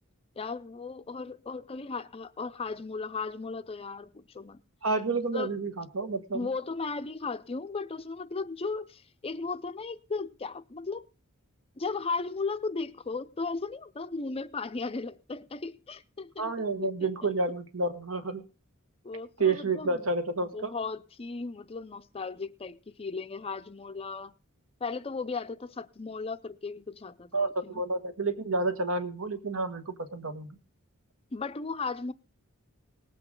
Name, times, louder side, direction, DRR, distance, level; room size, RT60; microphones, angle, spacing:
voice 1, 0.4-4.6 5.3-5.5 6.3-11.1 11.8-16.5 16.8-16.9 19.0-20.1 20.4-24.3 24.8-27.8 31.3-32.1, left 4 dB, 25° left, 0.5 m, -36 dB
voice 2, 4.8-6.5 16.4-18.4 19.4-20.7 27.3-30.5, right 3 dB, 70° right, 1.5 m, -30 dB
19.0 x 8.1 x 3.8 m
head